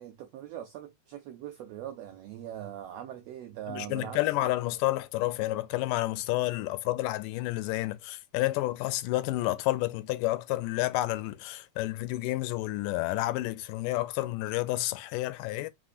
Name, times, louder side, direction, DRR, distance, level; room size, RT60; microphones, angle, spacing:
voice 1, 0.0-4.2, right 11 dB, 90° right, 1.4 m, -41 dB
voice 2, 3.7-15.7, left 17 dB, 90° left, 2.2 m, -30 dB
4.4 x 3.9 x 2.4 m
omnidirectional pair, 3.7 m